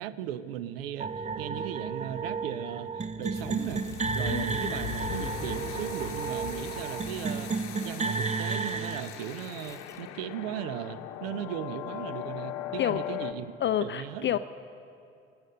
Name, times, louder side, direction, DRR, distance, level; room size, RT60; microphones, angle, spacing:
voice 1, 0.0-3.8 4.1-7.5 7.8-13.5 13.8-14.3, right 10 dB, 80° right, 15 dB, 0.6 m, -37 dB
sound 1, 1.0-9.0, right 4 dB, 25° right, 0.6 m, -32 dB
Water tap faucet, 3.2-11.0 11.3-12.3, left 3 dB, 10° left, 1.4 m, -54 dB
sound 2, 3.4-13.3, left 11 dB, 65° left, 0.8 m, -39 dB
voice 2, 4.2-4.7 12.8-13.0 13.6-14.4, left 11 dB, 40° left, 12 dB, 0.4 m, -29 dB
19.0 x 8.9 x 6.5 m, 2.6 s
hypercardioid pair, 50°, 29 cm